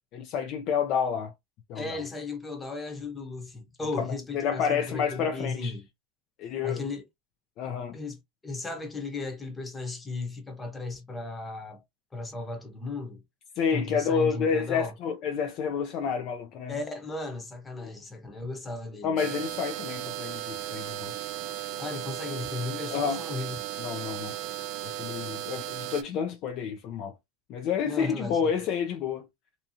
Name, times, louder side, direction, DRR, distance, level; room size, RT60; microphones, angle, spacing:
voice 1, 0.1-1.3 1.7-2.0 4.0-4.1 4.3-5.7 6.4-6.8 7.6-8.0 13.6-16.7 17.8-17.9 19.0-21.1 22.9-23.2 23.8-24.3 24.8-27.1 27.5-29.3, left 6 dB, 50° left, 0.5 m, -29 dB
voice 2, 1.7-5.9 6.6-7.1 7.9-8.2 8.4-11.8 12.1-13.2 13.7-14.9 16.7-19.2 21.8-23.5 27.8-28.5, left 3 dB, 15° left, 0.9 m, -35 dB
sound 1, 19.2-26.0, right 13 dB, 55° right, 0.4 m, -36 dB
2.7 x 2.3 x 2.7 m
hypercardioid pair, 105°, 0 cm